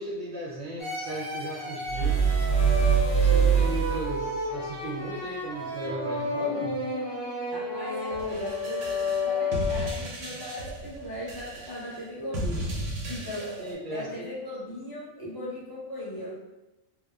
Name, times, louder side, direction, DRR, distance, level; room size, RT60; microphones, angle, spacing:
voice 1, 0.0-2.2 3.1-6.9 13.6-14.3, right 1 dB, 60° right, -4 dB, 0.5 m, -36 dB
sound 1, 0.8-10.1, left 2 dB, 45° left, 1.1 m, -32 dB
sound 2, 1.9-4.3, right 6 dB, 80° left, 1.1 m, -23 dB
voice 2, 7.5-12.7 13.1-13.4 13.9-16.3, left 1 dB, 25° left, -7 dB, 0.6 m, -38 dB
sound 3, 8.1-13.7, right 1 dB, 85° right, 0.9 m, -35 dB
2.8 x 2.0 x 2.3 m, 1.0 s
omnidirectional pair, 1.3 m